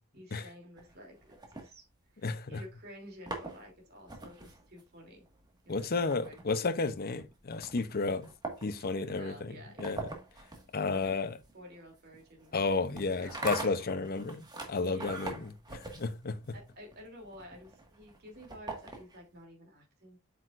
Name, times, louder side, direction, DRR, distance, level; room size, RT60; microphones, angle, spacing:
voice 1, 0.1-1.8 2.1-5.2 5.6-6.4 9.0-10.0 10.7-11.1 11.5-13.3 14.8-15.2 16.5-20.2, equal, 50° right, 3.0 m, -51 dB
sound 1, 0.8-2.4 3.0-19.4, right 2 dB, 20° right, 1.7 m, -44 dB
voice 2, 2.2-2.6 5.7-8.3 8.6-9.5 9.8-10.1 10.7-11.4 12.5-16.4, left 3 dB, 45° left, 0.7 m, -32 dB
8.2 x 6.5 x 2.5 m
head